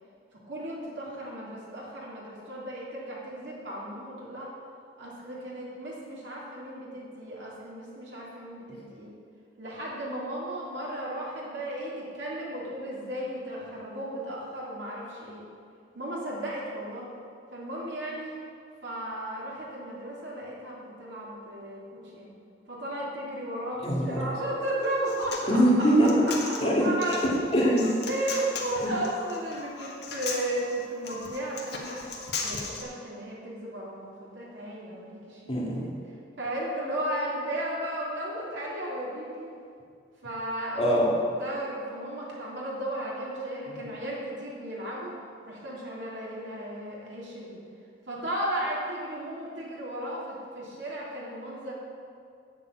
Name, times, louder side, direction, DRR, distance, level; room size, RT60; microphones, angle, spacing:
voice 1, 0.5-4.5 5.0-9.1 9.6-15.5 15.9-17.1 17.5-18.4 18.8-21.8 22.1-22.3 22.7-25.6 26.5-27.5 28.0-32.0 32.4-35.9 36.4-39.5 40.2-40.9 41.4-45.2 45.4-47.6 48.1-51.7, right 1 dB, 75° right, -5 dB, 3.1 m, -35 dB
voice 2, 23.8-24.2 25.5-26.3 26.6-28.0 28.8-29.0 35.5-35.9 40.8-41.1 43.7-43.8, equal, 30° left, -4 dB, 2.0 m, -24 dB
Human voice, 24.8-32.8, left 4 dB, 60° left, 1.5 m, -37 dB
8.4 x 7.5 x 8.2 m, 2.3 s
head